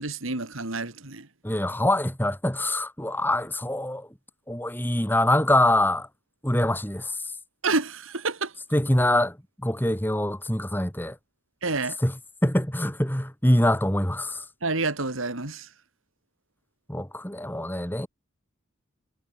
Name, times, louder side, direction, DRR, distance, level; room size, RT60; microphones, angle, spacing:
voice 1, 0.0-1.3 7.6-8.5 11.6-12.0 14.6-15.7, right 3 dB, 75° right, 3.1 m, -28 dB
voice 2, 1.4-4.1 4.5-6.1 6.4-7.2 8.7-9.4 9.6-11.2 12.0-14.4 16.9-18.1, left 1 dB, 10° left, 2.7 m, -24 dB
head